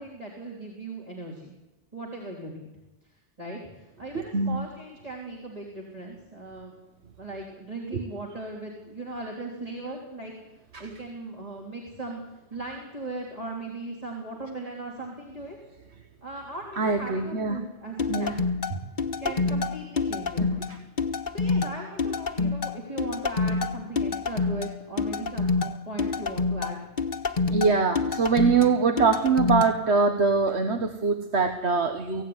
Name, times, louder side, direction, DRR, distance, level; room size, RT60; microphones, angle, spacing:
voice 1, 0.0-1.5 1.9-2.7 3.4-6.7 7.2-10.3 10.8-15.6 16.2-18.4 19.2-20.7 21.3-26.8, right 2 dB, 35° right, -3 dB, 3.7 m, -38 dB
voice 2, 16.8-17.6 18.1-18.3 18.8-18.9 19.2-19.3 20.4-20.8 22.4-22.5 27.5-32.2, right 4 dB, 80° right, 6 dB, 1.6 m, -23 dB
sound 1, 18.0-29.7, left 4 dB, 45° left, 1.4 m, -27 dB
23.5 x 16.5 x 9.7 m, 1.1 s
omnidirectional pair, 1.1 m